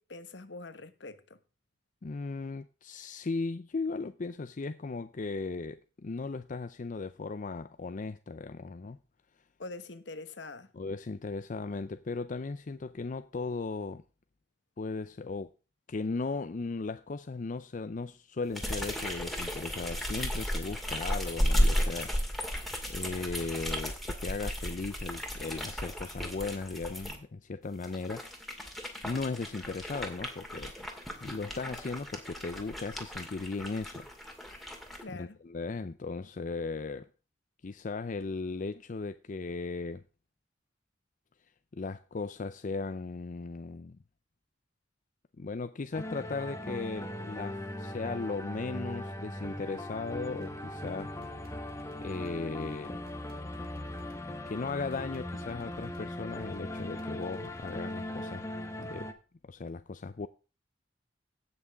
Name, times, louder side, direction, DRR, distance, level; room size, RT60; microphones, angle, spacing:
voice 1, 0.0-1.4 9.6-10.7 35.0-35.4, left 3 dB, 70° left, 1.2 m, -44 dB
voice 2, 2.0-9.0 10.7-14.0 14.8-15.5 15.9-22.1 22.9-28.3 29.0-30.7 31.2-34.1 35.1-37.1 37.6-40.0 41.7-44.0 45.4-51.1 52.0-53.0 54.5-58.5 58.8-59.1 59.4-60.3, left 3 dB, 45° left, 0.5 m, -37 dB
sound 1, 18.5-27.2 27.7-35.0, equal, ahead, 2.3 m, -34 dB
sound 2, 45.9-59.1, left 1 dB, 15° left, 1.2 m, -39 dB
sound 3, 50.4-57.8, right 1 dB, 60° right, 1.7 m, -57 dB
17.0 x 6.3 x 3.5 m
head